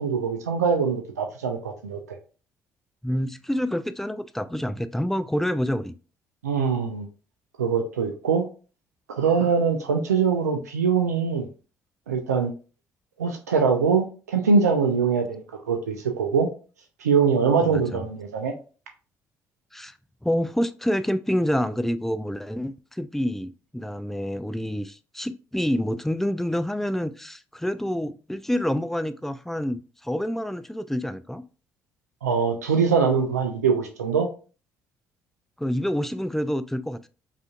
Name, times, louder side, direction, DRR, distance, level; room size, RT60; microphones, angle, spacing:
voice 1, 0.0-2.2 6.4-7.1 7.6-8.4 9.1-11.5 12.1-12.5 13.2-16.5 17.0-18.5 32.2-34.3, right 5 dB, 85° right, 0.4 m, -23 dB
voice 2, 3.0-5.9 17.6-18.0 19.7-19.9 20.2-31.4 35.6-37.1, equal, 5° left, 0.3 m, -27 dB
4.9 x 2.5 x 2.3 m
figure-of-eight pair, 45°, 9 cm